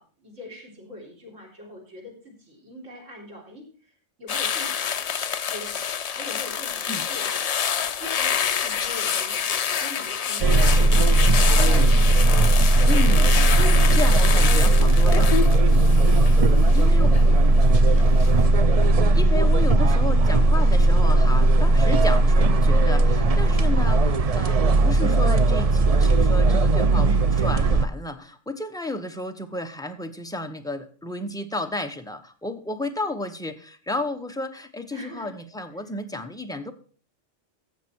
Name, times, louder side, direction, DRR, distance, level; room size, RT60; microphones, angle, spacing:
voice 1, 0.0-3.9 4.2-13.0 13.3-14.1 15.6-16.1 16.7-17.2 17.5-18.4 34.9-35.3, left 1 dB, 85° right, 1 dB, 3.9 m, -42 dB
sound 1, 4.3-17.6 18.0-18.3, left 7 dB, 55° left, 0.4 m, -28 dB
sound 2, 10.4-27.9, right 2 dB, 45° right, 0.5 m, -17 dB
voice 2, 10.6-11.2 12.8-13.3 13.9-16.1 16.7-17.1 19.1-36.7, left 2 dB, 5° left, 6 dB, 0.7 m, -33 dB
13.5 x 7.5 x 4.5 m, 0.41 s
omnidirectional pair, 1.3 m